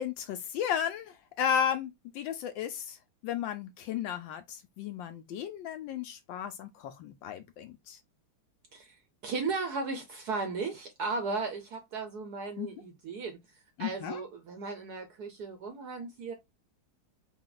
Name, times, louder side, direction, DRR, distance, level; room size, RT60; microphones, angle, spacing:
voice 1, 0.0-3.0 3.2-8.0 12.6-12.7 13.8-14.2, left 8 dB, 75° left, 1.2 m, -34 dB
voice 2, 9.2-13.4 13.8-16.3, right 4 dB, 70° right, 1.0 m, -36 dB
4.2 x 2.3 x 3.7 m
omnidirectional pair, 2.3 m